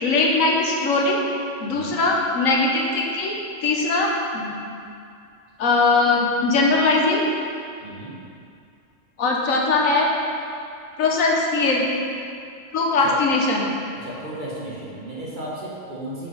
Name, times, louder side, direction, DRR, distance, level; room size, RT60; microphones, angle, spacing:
voice 1, 0.0-1.2 1.6-4.6 5.6-7.2 9.2-10.1 11.0-11.9 12.7-13.7, left 3 dB, 85° left, -1 dB, 1.4 m, -20 dB
voice 2, 1.7-2.0 7.8-8.1 13.0-13.2 14.0-16.3, right 1 dB, 40° right, -6 dB, 1.5 m, -34 dB
6.6 x 5.0 x 5.5 m, 2.4 s
omnidirectional pair, 1.4 m